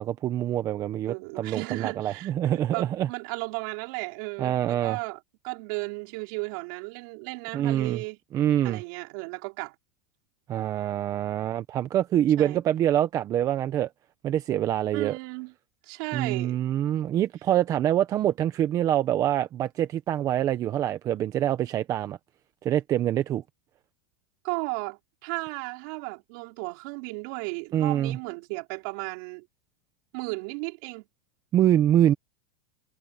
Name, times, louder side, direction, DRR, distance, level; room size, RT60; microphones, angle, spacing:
voice 1, 0.0-3.1 4.4-5.0 7.5-8.0 8.3-8.8 10.5-13.9 14.2-15.2 16.1-22.2 22.6-23.4 27.7-28.2 31.5-32.1, right 11 dB, 30° right, 0.9 m, -25 dB
voice 2, 1.1-8.2 8.6-9.7 12.4-12.6 14.9-15.5 15.8-16.6 24.4-29.5 30.1-31.1, right 30 dB, 55° right, 5.1 m, -35 dB
supercardioid pair, 145°, 12 cm